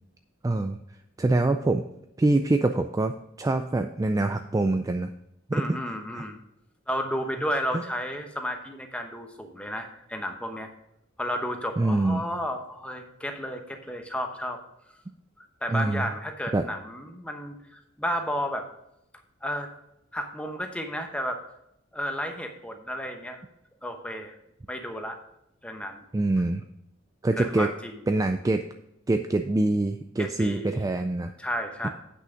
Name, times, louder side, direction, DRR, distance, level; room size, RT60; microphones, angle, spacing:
voice 1, 0.4-0.8 1.2-1.8 2.2-3.1 3.4-5.1 5.5-5.8 6.1-6.2 7.7-7.8 11.8-12.3 15.7-16.1 16.5-16.7 26.1-26.6 27.2-27.7 28.1-28.6 29.1-31.3 31.8-31.9, right 2 dB, 15° right, 7 dB, 0.3 m, -24 dB
voice 2, 5.5-6.4 6.9-10.7 11.2-14.6 15.4-18.7 19.4-19.7 20.1-21.4 21.9-23.4 23.8-24.3 24.7-25.2 25.6-26.0 27.4-28.0 30.2-30.9 31.4-31.9, equal, 5° left, 4 dB, 0.9 m, -32 dB
8.3 x 6.2 x 5.1 m, 0.81 s
head